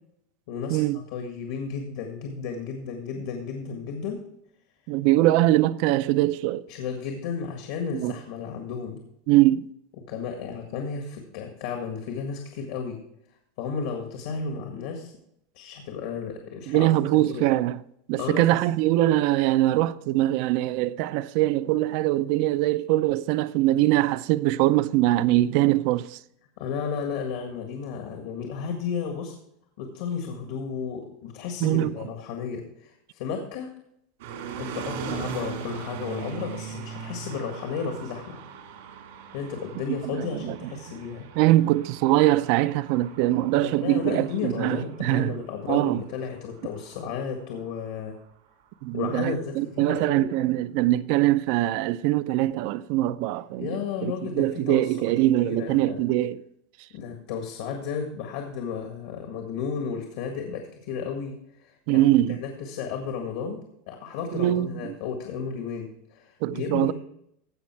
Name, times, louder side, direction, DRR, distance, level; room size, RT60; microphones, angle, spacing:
voice 1, 0.5-4.2 6.7-9.0 10.1-13.0 13.6-15.1 15.5-17.5 18.1-18.6 26.6-29.3 29.8-33.7 34.6-38.4 39.3-41.3 43.5-48.1 48.9-50.3 53.6-55.0 55.4-56.1 56.9-62.0 62.4-66.9, left 6 dB, 65° left, 1.7 m, -33 dB
voice 2, 4.9-6.7 7.9-8.1 9.3-9.7 16.7-17.8 18.1-26.2 31.6-31.9 40.1-40.6 41.4-45.4 45.7-46.0 48.8-56.4 61.9-62.4 64.3-65.0 66.4-66.9, right 15 dB, 55° right, 0.5 m, -22 dB
sound 1, 34.2-48.2, right 7 dB, 85° right, 2.8 m, -40 dB
16.0 x 5.3 x 4.6 m
supercardioid pair, 150°, 0 cm